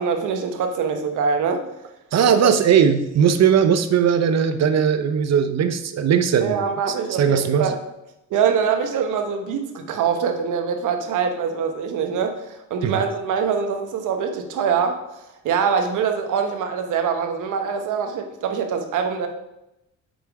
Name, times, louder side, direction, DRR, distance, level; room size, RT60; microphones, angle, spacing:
voice 1, 0.0-1.6 2.4-2.5 6.4-7.7 8.3-19.3, right 6 dB, 85° right, 6 dB, 1.2 m, -24 dB
voice 2, 2.1-6.6 7.1-7.7 12.8-13.0, right 7 dB, 60° right, 10 dB, 0.8 m, -18 dB
8.1 x 6.1 x 4.8 m, 0.90 s
cardioid pair, 90°, 30 cm